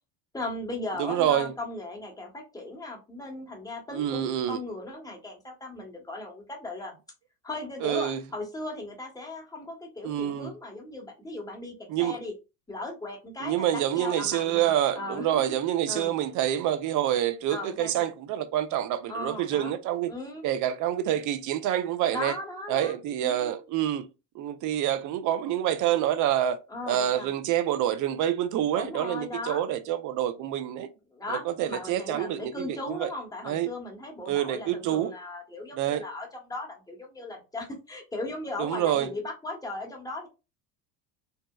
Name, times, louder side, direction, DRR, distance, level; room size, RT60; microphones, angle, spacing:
voice 1, 0.3-6.9 7.4-12.3 12.7-15.4 15.9-16.2 17.5-18.1 19.1-19.7 20.1-20.4 22.1-23.6 26.7-27.3 28.7-29.6 31.1-40.3, left 2 dB, 10° left, 0.9 m, -37 dB
voice 2, 1.0-1.5 3.9-4.6 7.8-8.2 10.0-10.5 11.9-12.2 13.4-20.1 20.4-22.3 22.7-24.0 24.4-26.6 26.9-30.9 31.3-33.1 33.4-33.7 34.3-35.1 35.7-36.0 38.6-39.1, right 11 dB, 45° right, 0.4 m, -27 dB
2.8 x 2.0 x 2.2 m
supercardioid pair, 90°, 46 cm